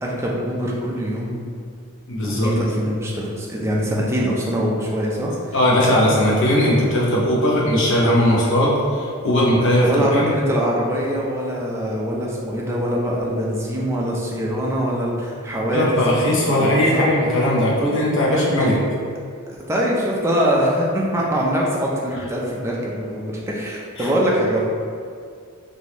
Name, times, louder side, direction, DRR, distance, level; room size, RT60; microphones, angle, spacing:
voice 1, 0.0-1.4 2.2-5.5 9.8-17.1 18.2-18.7 19.5-24.6, equal, 10° right, -4 dB, 0.4 m, -23 dB
voice 2, 2.1-2.5 5.5-10.3 15.7-18.8 24.0-24.1, left 1 dB, 55° left, -5 dB, 0.7 m, -18 dB
3.3 x 2.6 x 2.9 m, 2.2 s
head